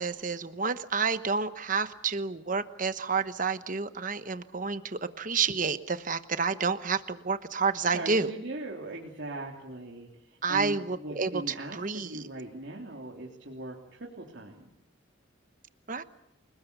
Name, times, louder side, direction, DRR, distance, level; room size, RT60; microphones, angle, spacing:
voice 1, 0.0-8.3 10.4-11.3 11.7-12.2 15.9-16.0, right 5 dB, 40° right, 11 dB, 1.1 m, -29 dB
voice 2, 7.9-14.6, right 2 dB, 60° right, -2 dB, 3.3 m, -40 dB
29.5 x 20.0 x 7.0 m, 0.83 s
head